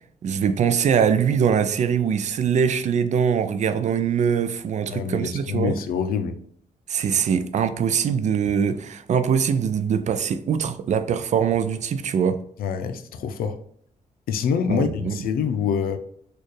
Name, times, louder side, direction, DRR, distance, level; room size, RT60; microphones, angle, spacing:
voice 1, 0.2-5.8 6.9-12.4 14.7-15.2, right 7 dB, 55° right, 0.4 m, -22 dB
voice 2, 4.9-6.4 12.6-13.6 14.3-16.0, left 7 dB, 90° left, 0.5 m, -25 dB
4.3 x 2.3 x 3.1 m
cardioid pair, 115°, 15 cm